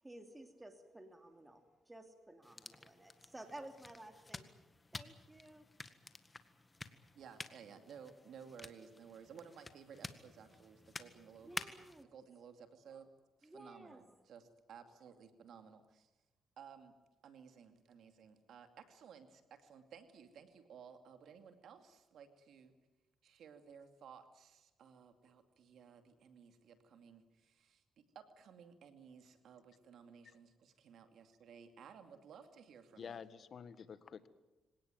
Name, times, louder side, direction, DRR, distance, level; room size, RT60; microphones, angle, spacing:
voice 1, 0.0-4.5 4.9-5.6 11.4-12.1 13.4-14.0, right 1 dB, 15° right, 6 dB, 2.7 m, -54 dB
sound 1, 2.4-12.0, left 3 dB, 25° left, 1.8 m, -51 dB
voice 2, 7.1-11.5 12.1-13.1 13.4-16.1 16.6-16.9 17.2-22.7 23.2-33.2, right 7 dB, 75° right, 8 dB, 2.5 m, -57 dB
voice 3, 33.0-34.3, left 6 dB, 60° left, 13 dB, 1.7 m, -49 dB
25.5 x 18.0 x 9.3 m, 1.1 s
cardioid pair, 75°, 0 cm